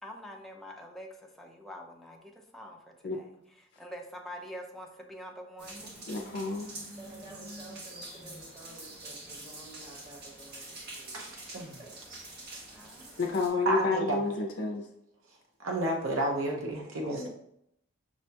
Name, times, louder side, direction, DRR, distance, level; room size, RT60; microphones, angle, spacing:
voice 1, 0.0-6.5 12.8-13.2, equal, ahead, 0 dB, 0.5 m, -46 dB
sound 1, 5.6-13.5, right 2 dB, 55° right, 1.0 m, -46 dB
voice 2, 6.1-6.7 13.2-14.8 17.2-17.3, left 3 dB, 55° left, 1 dB, 0.4 m, -30 dB
voice 3, 7.0-11.5 11.8-11.9, right 2 dB, 30° right, -3 dB, 1.3 m, -51 dB
voice 4, 11.1-11.8 12.5-12.6 13.7-14.2 15.3-17.3, right 1 dB, 70° right, -1 dB, 0.6 m, -32 dB
6.0 x 2.2 x 2.7 m, 0.77 s
head